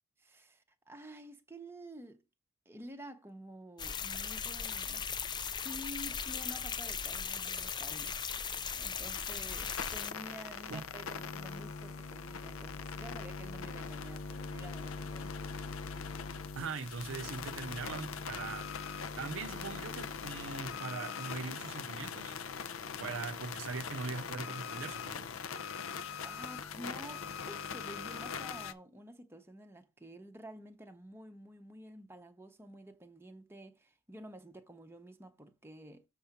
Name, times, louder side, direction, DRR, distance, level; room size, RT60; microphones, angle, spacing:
voice 1, 0.2-2.2 2.7-5.2 5.6-8.2 8.7-15.4 26.2-36.1, right 1 dB, 10° right, 0.7 m, -50 dB
sound 1, 3.8-10.1, left 6 dB, 20° left, 0.4 m, -38 dB
sound 2, 9.0-28.7, left 6 dB, 70° left, 0.6 m, -41 dB
voice 2, 16.6-18.7 19.2-22.4 23.0-25.3, right 4 dB, 65° right, 0.6 m, -41 dB
7.0 x 3.7 x 5.8 m
head